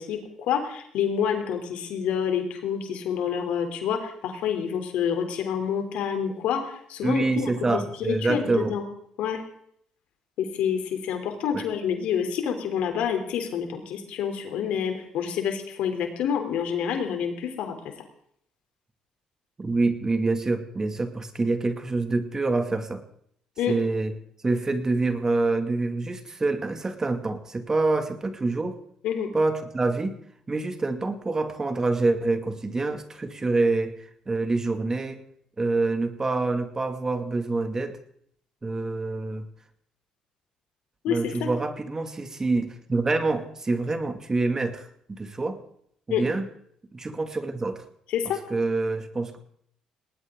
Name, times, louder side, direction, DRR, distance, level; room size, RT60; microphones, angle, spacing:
voice 1, 0.0-7.8 8.1-8.8 9.2-9.4 10.4-17.7 23.6-23.7 29.0-29.3 41.0-41.5 46.1-46.2 48.1-48.4, left 8 dB, 80° left, 5 dB, 3.4 m, -28 dB
voice 2, 7.0-8.7 11.5-11.6 19.6-23.0 23.7-24.1 24.4-28.8 29.3-30.2 30.5-35.2 35.6-38.0 38.6-39.5 41.1-45.6 46.1-46.5 46.9-47.8 48.5-49.4, right 3 dB, 25° right, 7 dB, 2.3 m, -26 dB
19.5 x 19.0 x 3.9 m, 0.67 s
supercardioid pair, 75°, 2 cm